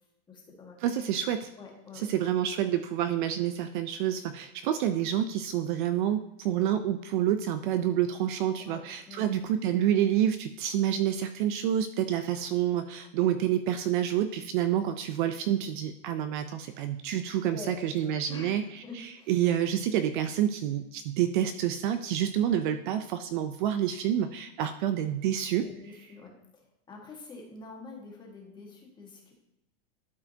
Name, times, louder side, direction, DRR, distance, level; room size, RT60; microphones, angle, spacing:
voice 1, 0.3-0.8 1.6-2.1 8.6-9.4 17.4-17.8 18.0-19.3 25.6-29.3, left 3 dB, 15° left, -1 dB, 1.6 m, -46 dB
voice 2, 0.8-1.5 2.0-25.7, right 10 dB, 50° right, 9 dB, 0.6 m, -28 dB
12.0 x 4.9 x 2.8 m, 0.88 s
supercardioid pair, 160°, 33 cm